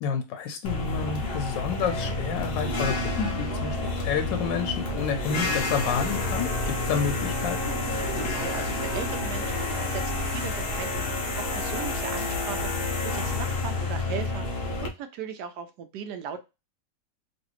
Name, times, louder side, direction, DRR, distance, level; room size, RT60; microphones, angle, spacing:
voice 1, 0.0-3.8 4.0-7.6, left 6 dB, 85° left, 6 dB, 1.3 m, -29 dB
sound 1, 0.6-14.9, left 2 dB, 50° left, 0.7 m, -29 dB
voice 2, 7.9-16.4, right 7 dB, 75° right, 8 dB, 1.1 m, -38 dB
3.1 x 2.7 x 3.0 m, 0.26 s
omnidirectional pair, 1.9 m